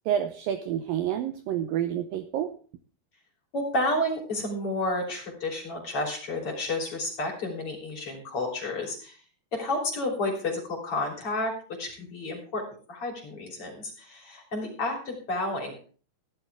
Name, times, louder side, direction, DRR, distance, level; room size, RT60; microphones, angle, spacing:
voice 1, 0.1-2.5, right 10 dB, 80° right, 9 dB, 2.0 m, -29 dB
voice 2, 3.5-9.2 9.5-11.5 11.8-12.6 12.9-15.8, left 2 dB, 35° left, 1 dB, 3.9 m, -31 dB
16.0 x 11.0 x 3.5 m, 0.40 s
omnidirectional pair, 4.8 m